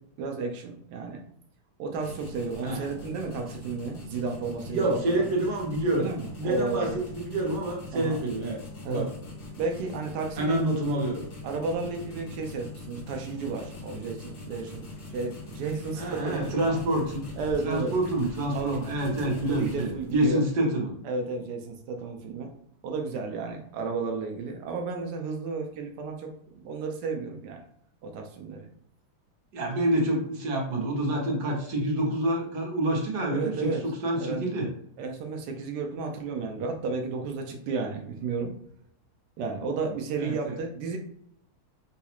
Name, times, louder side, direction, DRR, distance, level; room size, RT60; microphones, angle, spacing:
voice 1, 0.2-1.2 1.8-5.2 5.9-7.0 7.9-8.2 8.8-9.1 9.6-10.6 11.4-16.8 17.4-17.9 18.5-18.8 19.4-20.4 21.0-22.5 22.8-27.6 28.0-28.7 33.3-33.8 34.2-34.5 35.0-38.5 39.4-41.0, right 4 dB, 80° right, 2 dB, 0.9 m, -33 dB
sound 1, 2.0-20.3, left 2 dB, 55° left, 1.4 m, -42 dB
voice 2, 4.7-6.1 6.3-9.1 10.4-11.3 16.0-17.2 17.6-21.0 29.5-33.7 34.0-34.7 40.2-40.5, right 1 dB, 60° right, -2 dB, 1.4 m, -27 dB
4.0 x 2.3 x 2.9 m, 0.71 s
omnidirectional pair, 2.4 m